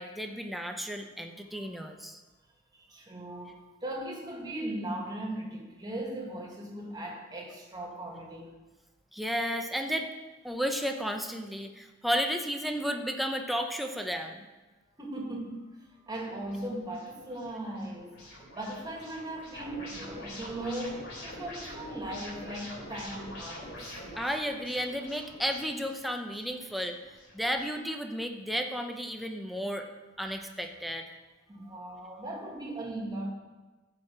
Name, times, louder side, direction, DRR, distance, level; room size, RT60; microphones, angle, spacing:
voice 1, 0.0-2.2 9.1-10.1 10.4-14.5 24.2-27.0 27.3-29.8 30.2-31.1, equal, ahead, 4 dB, 0.7 m, -33 dB
voice 2, 2.7-8.6 15.0-15.7 16.1-18.3 18.5-23.9 31.5-33.3, right 1 dB, 20° right, -1 dB, 2.0 m, -38 dB
sound 1, 16.1-27.6, equal, 60° left, 3.6 m, -46 dB
14.0 x 5.0 x 5.9 m, 1.2 s
head